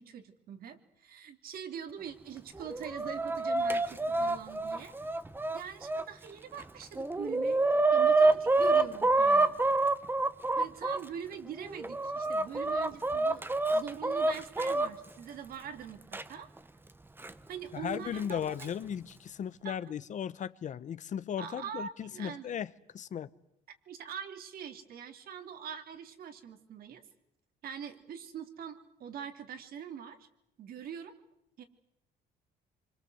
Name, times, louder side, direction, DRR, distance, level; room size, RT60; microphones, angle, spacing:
voice 1, 0.0-5.2 5.5-9.6 10.5-16.5 17.5-18.7 19.6-19.7 21.4-22.4 23.9-27.0 27.6-30.3 30.6-31.1 31.6-31.7, right 8 dB, 60° right, 2.9 m, -43 dB
Chicken rooster, 2.6-6.0 6.6-6.7 7.0-11.0 11.6-14.9 16.1-16.2 17.2-17.3 18.3-18.6, right 2 dB, 10° right, 1.2 m, -27 dB
voice 2, 17.7-23.3, left 8 dB, 45° left, 0.9 m, -36 dB
25.5 x 25.0 x 7.9 m
cardioid pair, 110°, 17 cm